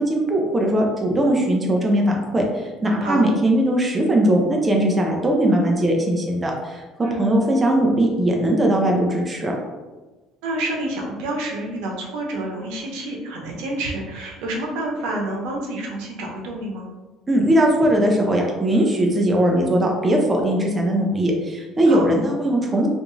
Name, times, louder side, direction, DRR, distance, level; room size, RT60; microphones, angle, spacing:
voice 1, 0.0-9.5 17.3-22.9, right 1 dB, 15° right, 0 dB, 0.5 m, -19 dB
voice 2, 10.4-16.9 21.9-22.1, right 1 dB, 90° right, 0 dB, 0.8 m, -28 dB
3.4 x 2.5 x 3.1 m, 1.2 s
cardioid pair, 150°, 0 cm